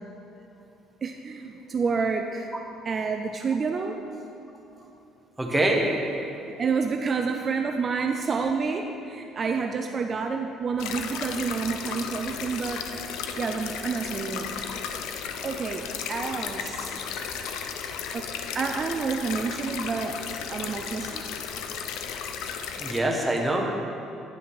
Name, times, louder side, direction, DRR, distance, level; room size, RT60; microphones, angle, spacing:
voice 1, 1.0-2.5 2.9-4.0 6.6-12.9 13.3-14.5 15.4-17.0 18.1-18.3 18.5-20.2 20.5-21.1, right 5 dB, 30° right, 5 dB, 0.4 m, -29 dB
voice 2, 5.4-6.3 22.7-23.7, right 1 dB, 5° right, 0 dB, 0.9 m, -25 dB
sound 1, 10.8-23.0, left 7 dB, 80° left, 0.5 m, -34 dB
9.8 x 5.8 x 4.7 m, 2.8 s
cardioid pair, 155°, 0 cm